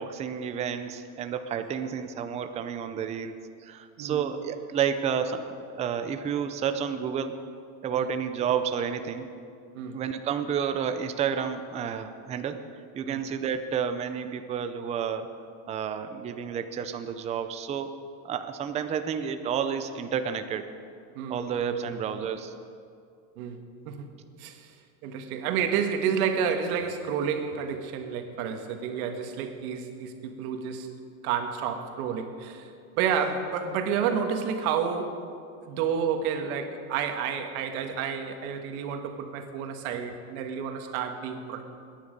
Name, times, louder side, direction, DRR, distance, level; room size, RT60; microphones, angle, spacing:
voice 1, 0.0-3.4 3.6-7.3 7.8-9.3 9.9-12.6 12.9-15.3 15.7-17.9 18.2-20.7 21.3-22.5, right 7 dB, 15° right, 8 dB, 0.4 m, -30 dB
voice 2, 21.2-21.9 23.4-24.1 24.4-24.7 25.0-30.9 31.2-32.7 33.0-35.2 35.6-41.6, right 7 dB, 70° right, 5 dB, 1.8 m, -30 dB
21.0 x 10.0 x 5.3 m, 2.4 s
supercardioid pair, 155°, 44 cm